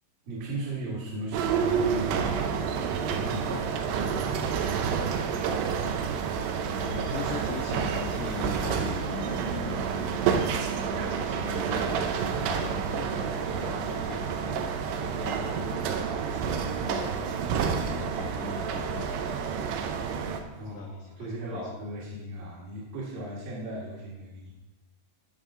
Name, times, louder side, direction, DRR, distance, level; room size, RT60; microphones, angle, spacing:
voice 1, 0.2-4.6 4.9-5.6 20.5-24.5, right 1 dB, 55° right, -8 dB, 3.1 m, -38 dB
sound 1, 1.3-20.4, right 6 dB, 80° right, 2.6 m, -29 dB
voice 2, 3.5-3.9 6.8-14.6 15.0-17.3 17.7-20.2 20.6-21.7, left 7 dB, 80° left, 3 dB, 2.3 m, -41 dB
15.0 x 5.6 x 3.7 m, 1.0 s
omnidirectional pair, 5.2 m